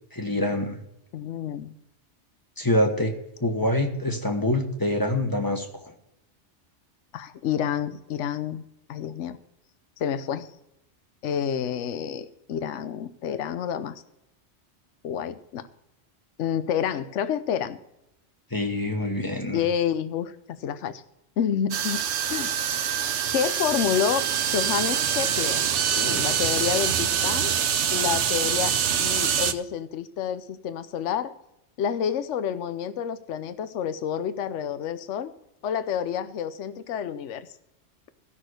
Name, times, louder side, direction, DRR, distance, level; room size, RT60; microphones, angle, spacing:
voice 1, 0.1-0.8 2.6-3.1 3.4-5.9 18.5-19.6, left 1 dB, 20° left, 3 dB, 1.3 m, -25 dB
voice 2, 1.1-1.7 7.1-8.6 8.9-9.4 10.0-10.5 11.2-14.0 15.0-15.7 16.4-17.8 19.5-21.0 21.4-22.0 22.3-22.5 23.3-24.2 24.5-25.6 26.0-27.5 27.9-31.3 31.8-35.3 35.6-37.5, left 8 dB, 80° left, 12 dB, 1.0 m, -29 dB
sound 1, 21.7-29.5, right 8 dB, 75° right, 1.0 m, -25 dB
15.0 x 6.2 x 6.3 m, 0.83 s
omnidirectional pair, 1.2 m